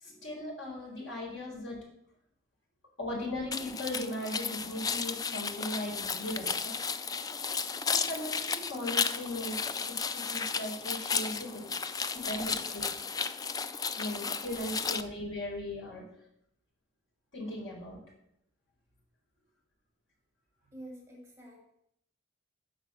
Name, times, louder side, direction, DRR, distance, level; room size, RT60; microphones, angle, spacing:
voice 1, 0.0-1.8 3.0-6.7 7.9-11.7 12.2-12.8 14.0-16.0 17.3-18.0, left 1 dB, 70° left, -2 dB, 4.5 m, -38 dB
sound 1, 3.5-15.0, left 5 dB, 20° left, 0.3 m, -34 dB
voice 2, 20.7-21.6, right 1 dB, 15° right, -3 dB, 2.2 m, -47 dB
10.0 x 5.2 x 8.0 m, 0.76 s
head